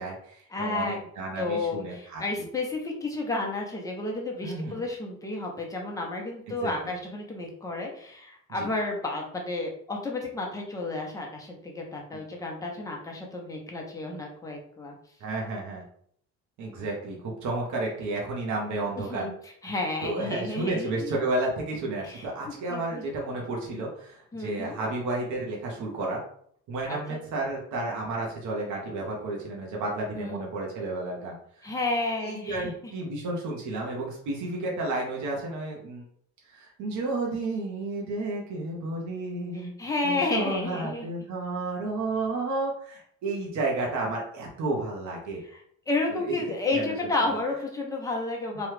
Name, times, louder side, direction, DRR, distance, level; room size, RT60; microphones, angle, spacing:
voice 1, 0.0-2.2 4.4-4.8 6.5-6.7 8.6-8.7 12.1-12.2 15.2-15.8 16.6-19.3 20.0-26.2 26.7-31.7 32.2-36.0 36.5-39.7 40.0-45.4 46.1-46.9, right 2 dB, 80° right, -2 dB, 1.0 m, -32 dB
voice 2, 0.5-1.0 1.4-14.9 19.0-19.3 19.6-21.1 22.0-23.0 24.3-24.8 26.9-27.2 30.2-30.4 31.6-32.7 39.5-41.1 45.4-48.7, left 2 dB, 10° left, -1 dB, 0.7 m, -31 dB
3.0 x 2.3 x 3.2 m, 0.63 s
cardioid pair, 140°, 29 cm